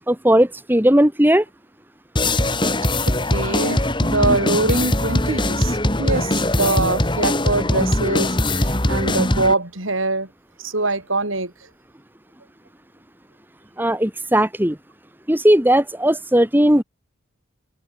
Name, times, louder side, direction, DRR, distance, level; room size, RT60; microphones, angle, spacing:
voice 1, 0.0-1.4 13.8-14.8 15.3-16.8, right 1 dB, 10° right, 1.6 m, -17 dB
sound 1, 2.2-9.5, left 1 dB, 25° left, 3.5 m, -21 dB
voice 2, 3.1-10.3 10.6-11.5, right 2 dB, 75° right, 6.7 m, -23 dB
open air
head